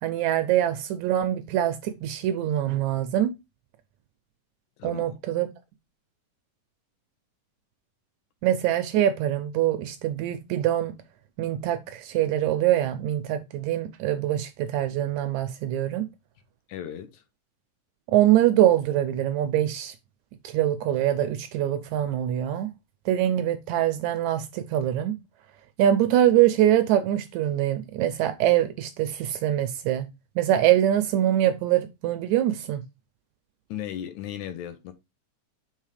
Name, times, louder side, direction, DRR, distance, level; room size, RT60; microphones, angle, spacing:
voice 1, 0.0-3.3 4.8-5.5 8.4-10.9 11.4-16.1 18.1-19.9 20.4-22.7 23.1-25.2 25.8-30.1 30.4-32.8, right 12 dB, 80° right, 1.8 m, -24 dB
voice 2, 4.8-5.2 16.7-17.2 33.7-34.9, left 10 dB, 75° left, 2.0 m, -36 dB
5.5 x 3.8 x 4.8 m
omnidirectional pair, 3.7 m